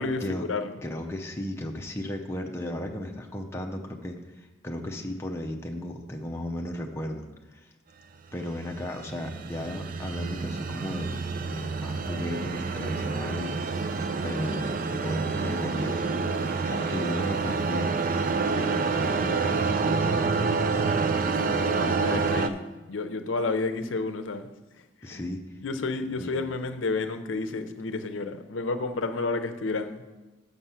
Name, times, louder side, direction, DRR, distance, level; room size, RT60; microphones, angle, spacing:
voice 1, 0.0-0.7 21.3-24.5 24.8-25.3 25.6-30.0, left 3 dB, 85° left, 9 dB, 0.6 m, -31 dB
voice 2, 0.8-7.6 8.3-13.7 14.2-17.9 18.7-20.6 25.0-25.4 26.1-26.5, left 1 dB, 15° left, 2 dB, 0.6 m, -35 dB
sound 1, 8.4-22.5, right 4 dB, 45° right, 0.4 m, -28 dB
6.7 x 6.0 x 5.6 m, 1.1 s
head